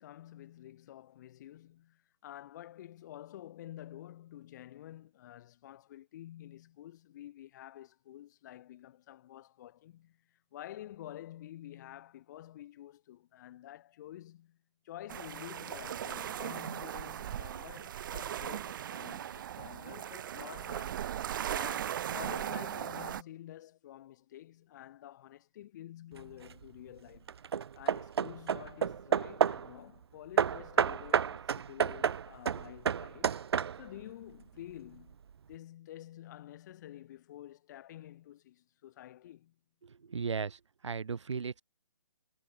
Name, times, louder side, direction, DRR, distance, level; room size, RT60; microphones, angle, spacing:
voice 1, 0.0-10.2 10.5-14.6 14.8-21.1 21.5-27.3 27.8-33.4 33.8-35.2 35.5-39.6, left 13 dB, 40° left, 5.7 m, -49 dB
seashore waves, 15.1-23.2, right 10 dB, 45° right, 5.7 m, -38 dB
Hammer / Wood, 26.2-26.6 27.3-29.7 30.4-34.0, right 7 dB, 60° right, 2.2 m, -31 dB
voice 2, 39.8-40.6 40.8-41.6, right 5 dB, 80° right, 1.7 m, -36 dB
hypercardioid pair, 155°, 15 cm